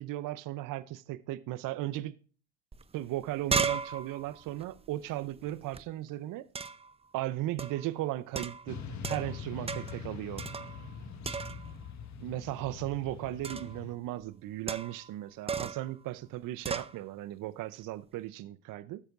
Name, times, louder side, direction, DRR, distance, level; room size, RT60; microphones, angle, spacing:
voice 1, 0.0-2.1 2.9-6.5 7.1-10.4 12.2-19.0, right 15 dB, 55° right, 0.6 m, -36 dB
sound 1, 2.7-2.8 3.1-5.8 6.5-6.9 7.6-7.9 8.3-9.4 9.7-10.0 10.4-11.0 11.2-11.8 13.4-13.8 14.7-15.1 15.5-15.9 16.6-16.9, right 5 dB, 15° right, 0.6 m, -35 dB
Motorcycle / Traffic noise roadway noise, 8.7-13.9, left 5 dB, 45° left, 1.4 m, -43 dB
13.0 x 7.8 x 2.5 m
supercardioid pair, 80°, 38 cm